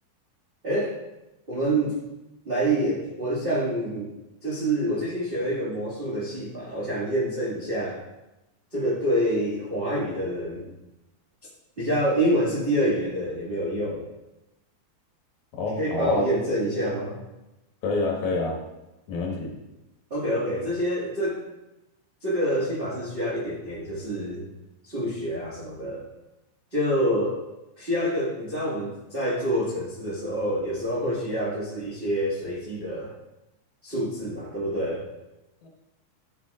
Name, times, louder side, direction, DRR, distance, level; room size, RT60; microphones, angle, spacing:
voice 1, 0.6-0.9 1.5-2.0 2.4-4.1 4.4-8.0 8.7-10.7 11.8-14.0 15.6-17.1 20.1-21.4 22.2-24.5 24.8-26.0 26.7-27.4 27.8-33.1 33.8-35.0, right 1 dB, 25° right, -9 dB, 1.1 m, -27 dB
voice 2, 15.5-16.3 17.8-18.6 19.1-19.5 35.6-35.7, left 3 dB, 60° left, 0 dB, 2.6 m, -27 dB
14.0 x 7.4 x 2.5 m, 0.99 s
omnidirectional pair, 4.3 m